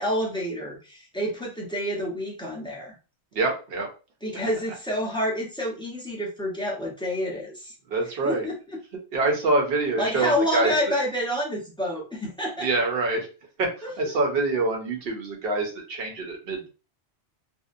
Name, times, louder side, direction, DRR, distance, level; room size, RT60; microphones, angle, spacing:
voice 1, 0.0-3.0 4.2-7.7 8.2-8.5 10.0-12.7 13.8-13.9, equal, 5° left, -3 dB, 0.5 m, -28 dB
voice 2, 3.3-3.9 7.8-8.5 8.9-11.0 12.6-13.3 13.6-16.7, right 3 dB, 60° right, 1 dB, 0.9 m, -26 dB
2.6 x 2.1 x 2.5 m, 0.33 s
omnidirectional pair, 1.2 m